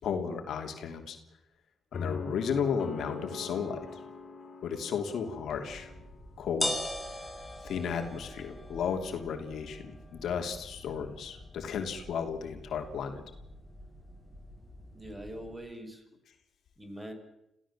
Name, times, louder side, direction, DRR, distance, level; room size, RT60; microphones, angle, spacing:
voice 1, 0.0-1.2 1.9-3.9 4.6-5.9 6.4-6.7 7.6-13.2, left 6 dB, 75° left, 5 dB, 3.0 m, -34 dB
sound 1, 1.9-6.1, left 4 dB, 50° left, 4.9 m, -41 dB
sound 2, 5.5-15.5, left 1 dB, 5° left, 7.3 m, -42 dB
voice 2, 14.9-16.1 16.8-17.1, equal, 15° right, 7 dB, 5.6 m, -43 dB
27.0 x 16.5 x 7.4 m, 0.88 s
cardioid pair, 65°, 0 cm